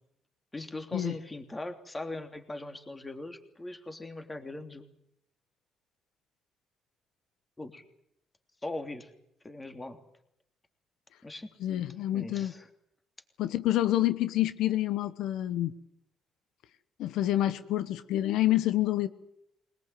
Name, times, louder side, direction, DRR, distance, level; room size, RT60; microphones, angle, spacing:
voice 1, 0.5-4.9 7.6-7.8 8.6-9.1 9.4-10.0 11.2-11.5 12.0-12.7, left 2 dB, 20° left, 6 dB, 3.2 m, -40 dB
voice 2, 11.6-12.5 13.4-15.7 17.0-19.1, left 14 dB, 90° left, 12 dB, 1.1 m, -27 dB
22.0 x 20.0 x 9.3 m, 0.75 s
cardioid pair, 90°, 0 cm